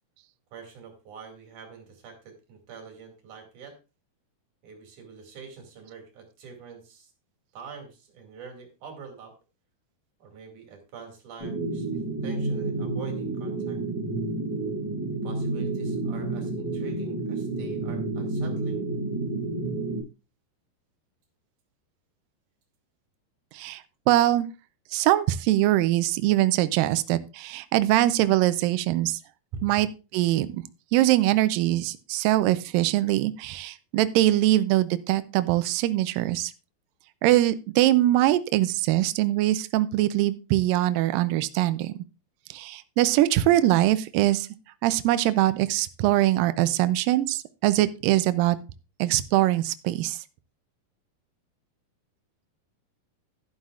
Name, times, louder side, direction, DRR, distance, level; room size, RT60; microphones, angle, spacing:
voice 1, 0.5-3.8 4.6-7.1 7.5-9.3 10.2-13.8 15.2-18.8 29.5-29.7, right 5 dB, 55° right, 3 dB, 3.6 m, -45 dB
sound 1, 11.4-20.0, right 2 dB, 55° left, 8.4 m, -30 dB
voice 2, 24.1-24.5 24.9-29.2 29.6-29.9 30.1-30.6 30.9-36.5 37.2-42.0 42.5-44.5 44.8-48.6 49.0-50.2, right 15 dB, 80° right, 13 dB, 2.1 m, -22 dB
11.5 x 11.5 x 2.4 m, 0.30 s
omnidirectional pair, 4.5 m